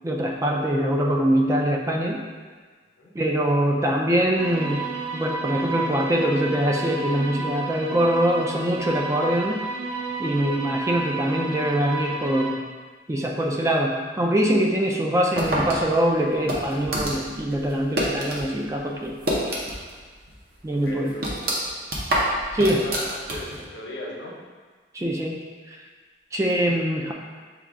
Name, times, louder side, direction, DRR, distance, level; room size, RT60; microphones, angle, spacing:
voice 1, 0.0-2.2 3.1-4.9 5.1-9.6 10.2-12.6 13.1-19.1 20.6-21.1 22.5-22.8 24.9-25.8 26.3-27.1, right 1 dB, 15° right, 0 dB, 0.3 m, -23 dB
sound 1, 4.3-12.5, right 3 dB, 85° right, 1.1 m, -32 dB
sound 2, 15.4-18.5 18.8-20.0 20.3-20.4 20.8-23.7, right 1 dB, 55° right, 0.8 m, -27 dB
voice 2, 20.8-21.4 22.6-24.3, left 1 dB, 75° left, -2 dB, 0.9 m, -37 dB
6.1 x 2.3 x 3.6 m, 1.5 s
head